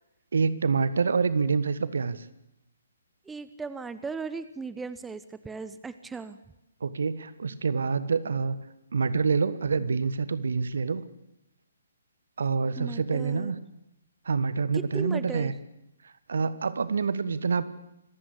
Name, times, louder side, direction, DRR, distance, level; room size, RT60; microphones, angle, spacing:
voice 1, 0.3-2.3 6.8-8.6 8.9-11.0 12.4-13.6 14.2-15.5 16.0-17.6, right 5 dB, 65° right, 15 dB, 1.4 m, -27 dB
voice 2, 3.3-6.4 12.8-13.5 14.7-15.5, right 4 dB, 10° right, 13 dB, 0.8 m, -37 dB
26.0 x 15.0 x 8.6 m, 0.88 s
figure-of-eight pair, 130°, 0 cm